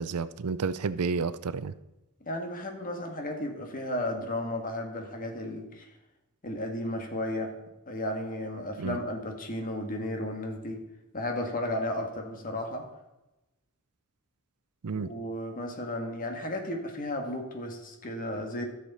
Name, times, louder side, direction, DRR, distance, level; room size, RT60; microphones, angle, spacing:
voice 1, 0.0-1.7 8.8-9.0 14.8-15.1, right 5 dB, 85° right, 15 dB, 0.5 m, -30 dB
voice 2, 2.2-5.9 6.4-7.6 7.9-10.8 11.1-12.9 14.9-18.6, left 1 dB, 40° left, 3 dB, 1.7 m, -34 dB
14.5 x 6.6 x 4.2 m, 0.99 s
head